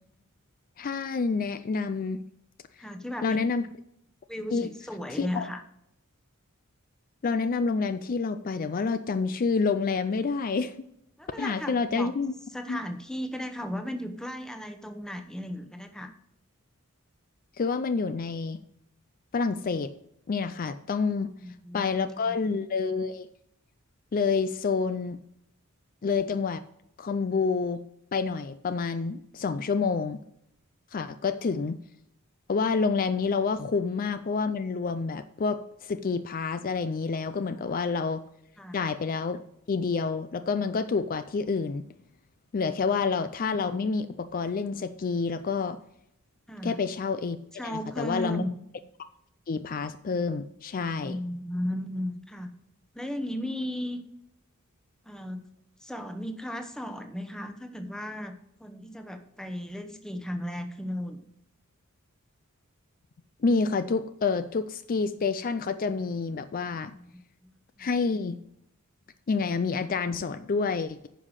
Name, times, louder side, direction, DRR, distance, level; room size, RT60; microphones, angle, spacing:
voice 1, 0.8-2.2 3.2-3.7 4.5-4.7 5.2-5.5 7.2-10.8 11.4-12.3 12.7-12.8 17.6-18.6 19.3-19.9 20.3-21.3 21.7-23.3 24.1-25.2 26.0-26.6 27.0-27.8 28.1-30.2 30.9-31.8 32.5-38.2 38.7-39.4 39.7-41.8 42.5-45.8 46.6-47.4 47.6-48.4 49.5-51.2 63.4-66.9 67.8-68.4 69.3-71.1, left 4 dB, 40° left, 12 dB, 0.4 m, -28 dB
voice 2, 2.8-3.4 4.3-5.6 11.2-12.1 12.5-16.1 21.3-22.4 38.6-38.8 46.5-46.8 47.5-48.5 51.0-52.5 52.9-54.0 55.0-55.4 55.8-58.3 58.6-61.2 66.9-67.9, equal, 5° left, 7 dB, 0.9 m, -35 dB
9.9 x 5.6 x 6.4 m, 0.77 s
head